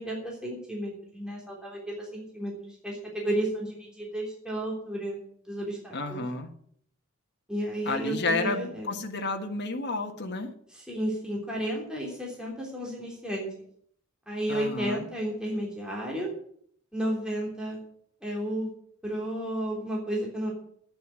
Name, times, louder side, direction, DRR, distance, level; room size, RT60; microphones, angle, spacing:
voice 1, 0.0-5.2 5.5-6.2 7.5-8.9 10.7-13.5 14.3-16.3 16.9-17.8 18.2-18.7 19.0-20.5, right 1 dB, 5° right, -3 dB, 3.4 m, -32 dB
voice 2, 5.9-6.5 7.8-10.5 14.5-15.0, left 3 dB, 50° left, 3 dB, 1.5 m, -31 dB
9.7 x 9.2 x 8.8 m, 0.64 s
head